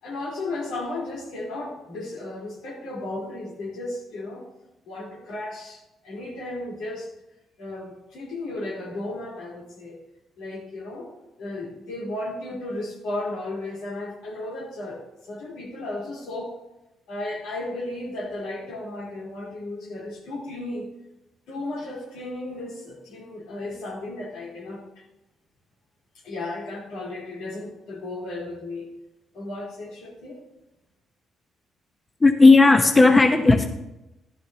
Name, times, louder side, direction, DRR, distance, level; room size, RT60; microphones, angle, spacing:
voice 1, 0.0-4.5 4.9-7.1 7.6-10.0 10.4-11.1 11.4-16.6 17.1-20.9 21.5-25.0 26.2-28.9 29.3-30.4, left 2 dB, 85° left, -3 dB, 3.8 m, -34 dB
voice 2, 32.2-33.6, left 3 dB, 20° left, 4 dB, 1.0 m, -14 dB
13.5 x 11.5 x 2.9 m, 0.94 s
cardioid pair, 90°, 0 cm